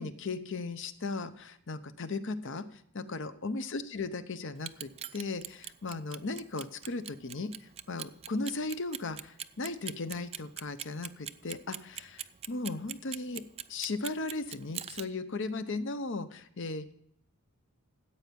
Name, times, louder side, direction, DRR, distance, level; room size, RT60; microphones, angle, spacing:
voice 1, 0.0-2.6 2.9-13.4 13.7-16.9, left 3 dB, 60° left, 12 dB, 0.8 m, -37 dB
Clock, 4.6-15.0, right 10 dB, 30° right, 0.4 m, -41 dB
14.0 x 8.5 x 5.3 m, 0.73 s
head